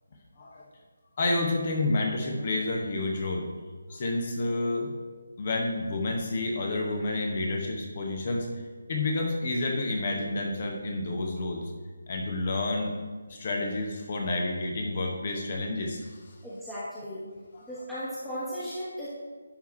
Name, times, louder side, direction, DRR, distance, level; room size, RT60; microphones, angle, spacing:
voice 1, 1.2-3.5 3.9-4.9 5.4-8.5 8.9-11.6 12.1-12.9 13.3-16.2 17.5-17.6, left 2 dB, 40° left, 1 dB, 0.9 m, -29 dB
voice 2, 16.4-17.2 17.6-19.1, equal, 5° left, -12 dB, 1.2 m, -36 dB
10.5 x 3.5 x 4.4 m, 1.4 s
figure-of-eight pair, 150°, 0 cm